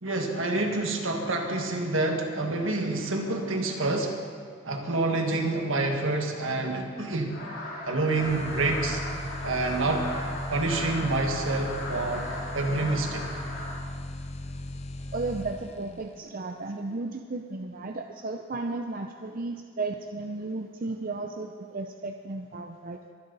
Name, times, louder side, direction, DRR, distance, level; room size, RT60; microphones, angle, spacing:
voice 1, 0.0-4.2 4.6-7.4 7.8-9.0 9.4-10.1 10.5-12.3 12.5-13.4, right 2 dB, 70° right, 3 dB, 1.7 m, -27 dB
sound 1, 7.3-13.8, left 2 dB, 75° left, 4.3 m, -37 dB
sound 2, 8.1-16.1, left 1 dB, 30° left, 0.7 m, -37 dB
voice 2, 15.1-23.1, right 3 dB, 40° right, 4 dB, 0.6 m, -34 dB
23.0 x 10.5 x 4.1 m, 2.2 s
head